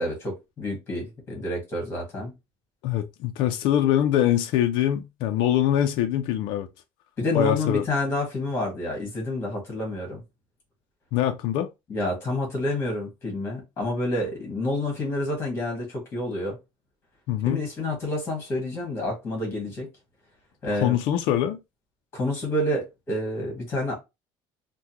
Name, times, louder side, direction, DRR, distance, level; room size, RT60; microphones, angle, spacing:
voice 1, 0.0-2.3 7.2-10.2 11.9-16.6 17.4-19.9 20.6-21.0 22.1-23.9, left 1 dB, 25° left, 1.5 m, -28 dB
voice 2, 2.8-6.7 7.3-7.8 11.1-11.7 17.3-17.6 20.8-21.6, left 11 dB, 60° left, 0.4 m, -23 dB
3.5 x 2.1 x 2.8 m
cardioid pair, 170°, 10 cm